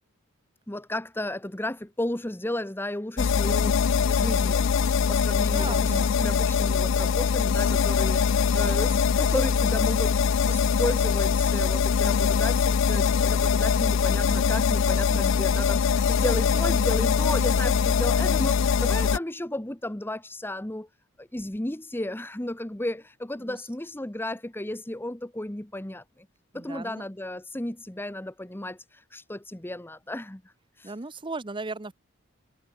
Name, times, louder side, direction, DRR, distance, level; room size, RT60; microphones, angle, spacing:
voice 1, 0.7-4.7 5.1-20.9 21.2-26.3 26.5-30.4 30.8-30.9, left 1 dB, 10° left, 0.9 m, -33 dB
sound 1, 3.2-19.2, left 6 dB, 65° left, 0.4 m, -23 dB
voice 2, 5.5-6.2 23.4-23.6 26.5-27.1 30.8-31.9, right 3 dB, 25° right, 0.8 m, -36 dB
head